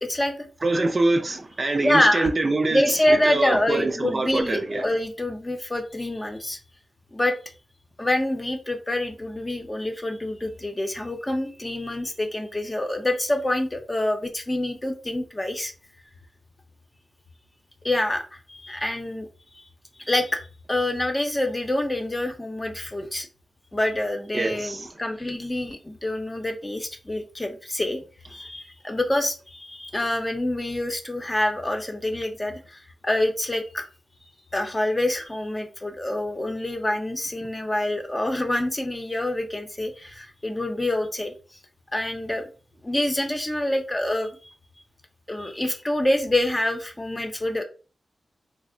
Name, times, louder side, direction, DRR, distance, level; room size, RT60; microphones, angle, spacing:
voice 1, 0.0-0.5 1.8-2.3 2.7-6.6 7.1-7.4 8.0-15.7 17.8-19.3 19.5-19.7 20.0-23.3 23.7-28.0 28.3-33.8 34.2-41.3 41.9-42.5 42.8-44.5 45.3-47.6, left 1 dB, 20° left, 0.7 m, -26 dB
voice 2, 0.6-2.8 3.3-4.8 24.3-24.9, right 2 dB, 45° right, 0.5 m, -24 dB
3.3 x 2.1 x 3.7 m
cardioid pair, 65°, 0 cm